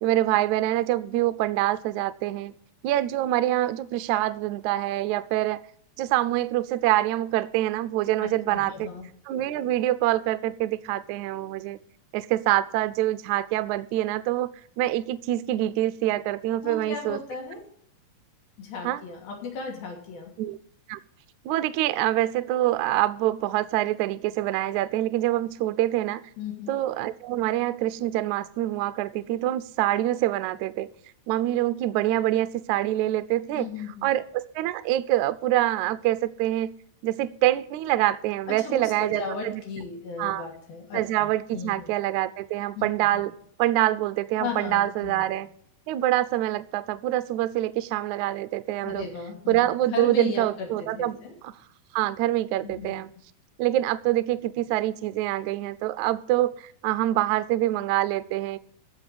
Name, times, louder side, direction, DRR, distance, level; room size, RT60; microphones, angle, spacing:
voice 1, 0.0-2.5 2.8-5.6 6.0-8.9 9.3-11.8 12.1-14.5 14.8-17.2 18.8-19.0 20.4-20.6 20.9-21.0 21.5-26.3 26.7-30.9 31.3-33.7 34.0-36.8 37.0-39.6 40.2-40.4 40.9-43.3 43.6-45.5 45.9-49.1 49.5-51.2 51.4-51.5 51.9-53.1 53.6-58.6, right 14 dB, 85° right, 13 dB, 1.6 m, -25 dB
voice 2, 8.2-9.1 16.6-17.6 18.6-20.3 26.4-26.7 33.6-34.1 38.6-41.9 42.8-42.9 43.1-43.2 44.4-45.3 48.8-51.3 52.6-52.9, left 4 dB, 75° left, 1 dB, 4.6 m, -36 dB
14.5 x 5.7 x 8.1 m, 0.64 s
omnidirectional pair, 4.3 m